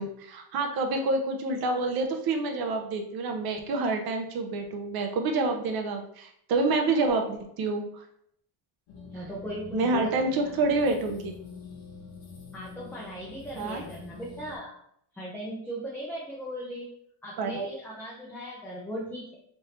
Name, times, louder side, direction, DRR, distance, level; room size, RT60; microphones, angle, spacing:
voice 1, 0.0-7.8 9.7-11.3 13.6-13.8 17.4-17.6, right 3 dB, 50° right, 4 dB, 0.8 m, -28 dB
sound 1, 8.9-14.6, left 5 dB, 70° left, 1.2 m, -45 dB
voice 2, 9.1-10.1 10.4-10.5 12.5-14.8 15.1-16.9 17.2-19.4, right 1 dB, 5° left, -6 dB, 0.6 m, -37 dB
3.4 x 2.6 x 4.2 m, 0.70 s
cardioid pair, 140°, 49 cm